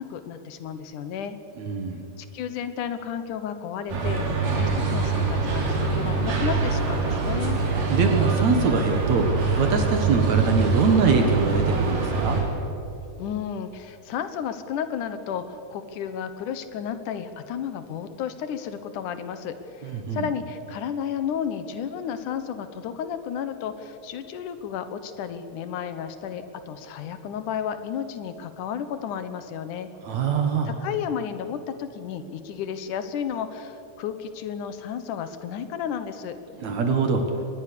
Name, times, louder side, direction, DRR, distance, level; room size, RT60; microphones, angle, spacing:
voice 1, 0.0-1.4 2.2-7.6 13.2-29.9 30.7-36.4, left 8 dB, 75° left, 10 dB, 2.5 m, -32 dB
voice 2, 1.6-2.1 7.9-9.3 9.6-12.4 19.8-20.3 30.0-30.8 36.6-37.3, right 5 dB, 65° right, 4 dB, 2.6 m, -23 dB
sound 1, 3.9-12.4, right 4 dB, 85° right, 4.8 m, -24 dB
23.0 x 20.0 x 6.9 m, 3.0 s
omnidirectional pair, 3.7 m